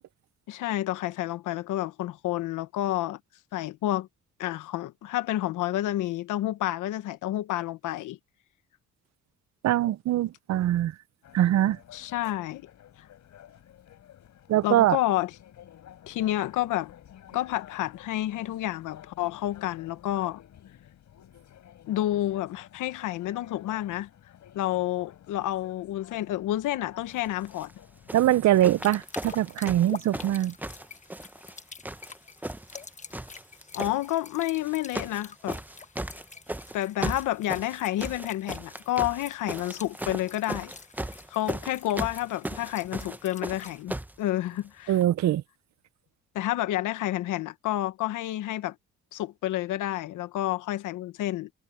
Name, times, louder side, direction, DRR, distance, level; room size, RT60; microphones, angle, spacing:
voice 1, 0.5-3.2 3.5-4.1 4.4-8.2 11.9-12.7 14.6-15.3 16.1-16.9 17.3-20.4 21.9-24.1 24.5-27.7 33.7-35.6 36.7-40.7 41.3-44.9 46.3-48.8 49.1-51.5, left 14 dB, 90° left, 1.3 m, -29 dB
voice 2, 9.6-10.9 11.3-11.8 14.5-15.0 28.1-30.5 44.9-45.4, right 13 dB, 65° right, 0.6 m, -23 dB
sound 1, 11.2-29.0, left 10 dB, 70° left, 5.1 m, -52 dB
sound 2, 27.4-27.7 28.1-31.6 31.8-32.8 33.1-34.0 34.6-35.2 35.5-44.2 45.0-45.1, right 1 dB, 5° right, 0.8 m, -36 dB
sound 3, 28.6-43.8, left 4 dB, 25° left, 1.2 m, -47 dB
cardioid pair, 90°, 30 cm